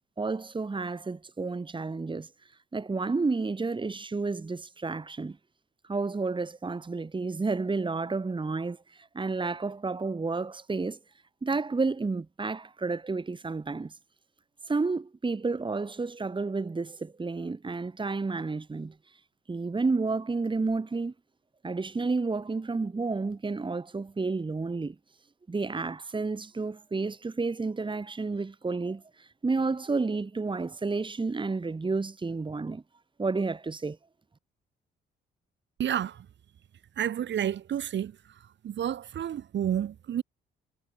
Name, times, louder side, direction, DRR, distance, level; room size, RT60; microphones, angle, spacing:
voice 1, 0.2-2.3 2.7-5.4 5.9-11.0 11.4-13.9 14.7-18.9 19.5-21.1 21.6-25.0 25.5-32.8 33.2-34.0, right 3 dB, 25° right, 3.4 m, -31 dB
voice 2, 35.8-36.2 37.0-38.1 38.6-40.2, right 10 dB, 65° right, 6.5 m, -30 dB
cardioid pair, 90°, 20 cm